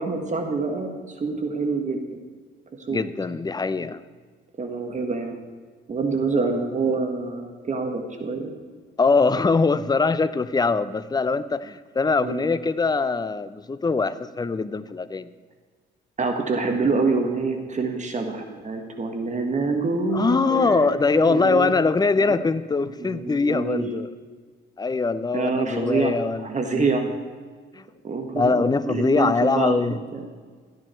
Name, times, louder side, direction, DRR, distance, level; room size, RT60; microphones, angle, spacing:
voice 1, 0.0-2.0 2.9-3.0 4.6-5.4 5.9-8.5 12.2-12.5 16.2-20.9 21.2-21.7 23.0-24.0 25.3-26.1 26.4-27.1 28.0-28.6 28.9-30.2, right 4 dB, 35° right, 4 dB, 1.7 m, -26 dB
voice 2, 2.9-4.0 9.0-15.3 20.1-24.1 24.8-26.5 26.7-27.0 27.7-27.9 28.3-30.0, left 4 dB, 20° left, 13 dB, 0.6 m, -22 dB
13.5 x 10.0 x 4.5 m, 1.6 s
cardioid pair, 90°, 20 cm